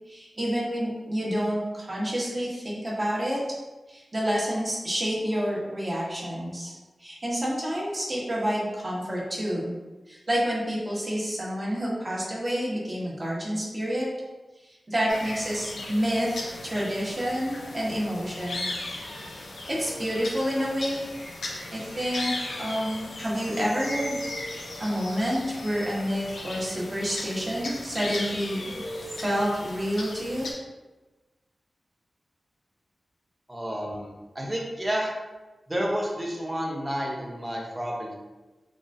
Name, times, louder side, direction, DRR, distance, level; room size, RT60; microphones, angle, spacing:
voice 1, 0.1-3.4 3.9-6.7 7.0-9.7 10.1-14.1 14.6-18.7 19.1-21.0 21.7-24.2 24.8-28.6 29.1-30.5, equal, 40° right, -6 dB, 1.3 m, -29 dB
sound 1, 15.1-30.5, left 1 dB, 85° left, 0.6 m, -37 dB
voice 2, 33.5-35.1 35.7-38.1, equal, 20° right, -2 dB, 0.9 m, -30 dB
3.9 x 2.9 x 2.6 m, 1.2 s
cardioid pair, 55°, 0 cm